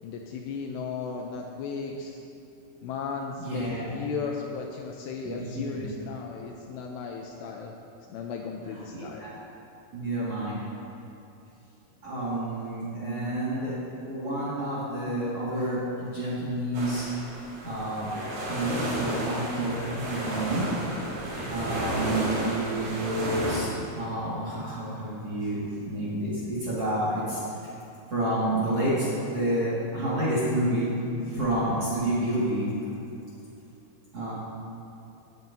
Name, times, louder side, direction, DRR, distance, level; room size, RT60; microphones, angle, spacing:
voice 1, 0.0-2.2 2.8-7.7 8.1-9.2, left 5 dB, 85° left, 1 dB, 2.5 m, -35 dB
voice 2, 3.4-3.9 5.2-5.8 8.9-9.3 9.9-10.6 12.0-17.1 17.6-18.1 18.5-20.7 21.5-27.4 28.1-30.9 31.2-32.7 34.1-34.3, right 1 dB, 45° right, -10 dB, 2.1 m, -29 dB
sound 1, 16.7-23.6, right 1 dB, 90° right, 5.5 m, -32 dB
18.0 x 9.5 x 2.7 m, 2.7 s
omnidirectional pair, 5.4 m